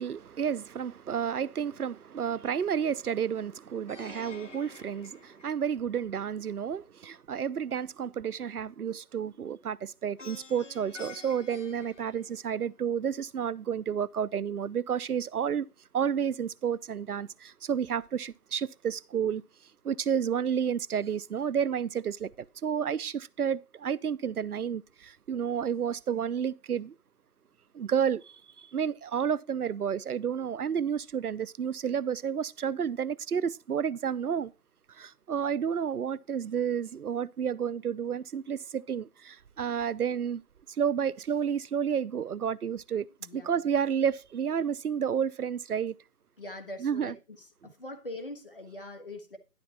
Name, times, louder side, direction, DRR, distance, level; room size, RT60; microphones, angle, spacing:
voice 1, 0.0-15.7 15.9-19.4 19.8-26.9 27.7-34.5 34.9-40.4 40.8-43.1 43.3-45.9 46.8-47.1, right 8 dB, 70° right, 0.6 m, -31 dB
Plucked string instrument, 3.9-6.0 10.2-12.8, left 4 dB, 50° left, 0.7 m, -49 dB
voice 2, 43.2-43.6 46.4-47.1 47.6-49.4, left 1 dB, 35° left, 1.4 m, -42 dB
11.5 x 4.3 x 5.9 m
figure-of-eight pair, 175°, 46 cm